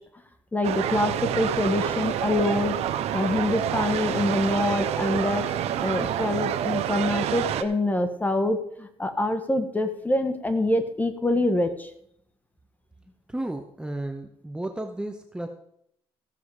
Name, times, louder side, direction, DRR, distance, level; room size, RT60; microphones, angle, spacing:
voice 1, 0.5-2.8 3.1-11.9, left 1 dB, 15° left, 8 dB, 1.5 m, -25 dB
sound 1, 0.6-7.6, right 10 dB, 80° right, 0.8 m, -28 dB
voice 2, 13.3-15.5, right 1 dB, 10° right, 4 dB, 1.0 m, -33 dB
15.5 x 7.0 x 4.9 m, 0.71 s
cardioid pair, 100°, 11 cm